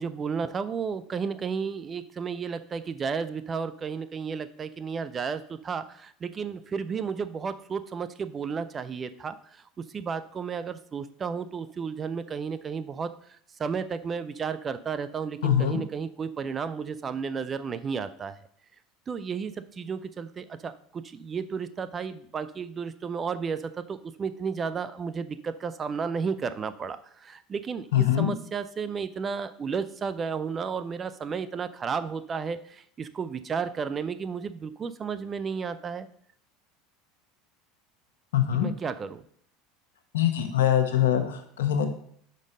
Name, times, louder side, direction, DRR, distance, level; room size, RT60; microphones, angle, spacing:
voice 1, 0.0-9.4 9.8-13.1 13.6-18.4 19.1-36.1 38.5-39.2, right 6 dB, 30° right, 13 dB, 0.5 m, -33 dB
voice 2, 15.4-15.8 27.9-28.3 38.3-38.7 40.1-41.9, left 10 dB, 80° left, 7 dB, 1.0 m, -23 dB
5.3 x 5.3 x 5.1 m, 0.62 s
hypercardioid pair, 85°, 0 cm